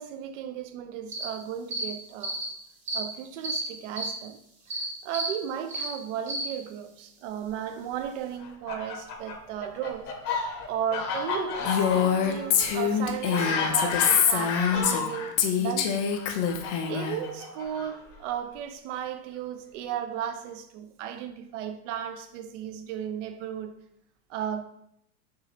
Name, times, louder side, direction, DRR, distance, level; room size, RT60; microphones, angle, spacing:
voice 1, 0.0-2.4 2.9-4.4 4.7-10.1 10.7-16.0 16.9-23.7 24.3-24.6, right 9 dB, 50° right, 0.5 m, -35 dB
sound 1, 1.1-1.2 1.7-1.8 2.2-2.4 2.9-3.0 3.4-3.6 3.9-4.1 4.7-4.8 5.1-5.3 5.7-5.9 6.3-6.4, right 2 dB, 15° right, 0.7 m, -31 dB
Fowl, 8.4-15.3 16.1-18.2, left 4 dB, 70° left, 1.2 m, -32 dB
Female speech woman speaking, 11.7-15.1 15.4-17.2, left 8 dB, 45° left, 0.6 m, -25 dB
6.1 x 3.0 x 2.8 m
supercardioid pair, 155°, 48 cm